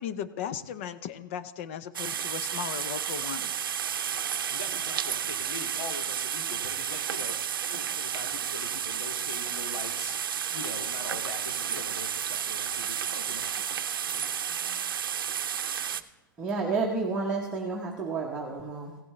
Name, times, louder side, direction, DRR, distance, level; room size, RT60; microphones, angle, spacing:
voice 1, 0.0-3.5, left 8 dB, 35° left, 14 dB, 0.6 m, -36 dB
sound 1, 1.9-16.0, right 8 dB, 80° right, 0.6 m, -32 dB
voice 2, 4.0-10.2 10.5-13.6 14.1-14.7, left 2 dB, 90° left, 2 dB, 2.2 m, -42 dB
voice 3, 16.4-19.0, right 4 dB, 5° right, -3 dB, 1.0 m, -30 dB
16.5 x 8.4 x 3.2 m, 1.0 s
hypercardioid pair, 160°, 11 cm